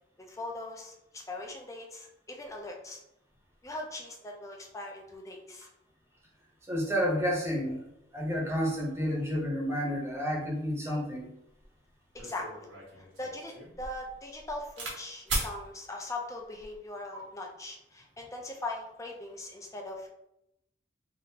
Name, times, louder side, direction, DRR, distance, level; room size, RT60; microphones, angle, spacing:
voice 1, 0.2-3.0 3.6-5.7 10.1-10.2 12.1-12.7 13.0-20.1, left 2 dB, 15° left, 1 dB, 0.4 m, -40 dB
voice 2, 6.7-7.8 8.1-11.3 17.1-17.2, equal, 15° right, -3 dB, 0.7 m, -30 dB
sound 1, 11.6-11.7 12.1-15.0 15.3-15.5 16.4-16.8, right 2 dB, 90° right, 1.1 m, -37 dB
3.5 x 2.4 x 2.8 m, 0.82 s
head